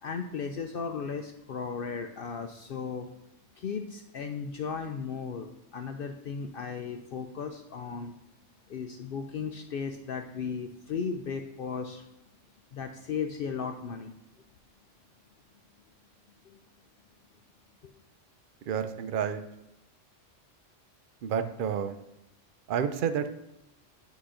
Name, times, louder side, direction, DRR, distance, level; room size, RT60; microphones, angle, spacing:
voice 1, 0.0-3.1 3.6-8.1 8.7-12.0 12.7-14.1 16.4-16.6 17.8-17.9, left 6 dB, 60° left, 5 dB, 0.6 m, -36 dB
voice 2, 18.7-19.4 21.2-22.0 22.7-23.3, right 8 dB, 60° right, 9 dB, 0.5 m, -29 dB
8.2 x 3.0 x 4.9 m, 0.88 s
omnidirectional pair, 1.3 m